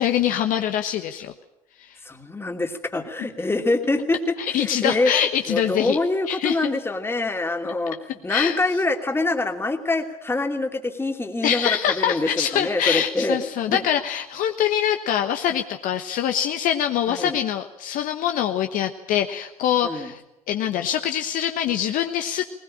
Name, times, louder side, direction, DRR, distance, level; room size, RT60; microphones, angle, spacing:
voice 1, 0.0-1.3 4.5-6.0 6.3-6.7 8.3-8.6 11.4-20.2 20.5-22.5, left 10 dB, 50° left, 7 dB, 1.2 m, -24 dB
voice 2, 2.0-4.2 4.5-5.1 5.5-13.4 13.7-13.8 17.1-17.4 19.8-20.1, left 2 dB, 15° left, 5 dB, 2.8 m, -25 dB
20.5 x 20.0 x 8.8 m, 0.87 s
figure-of-eight pair, 65°, 18 cm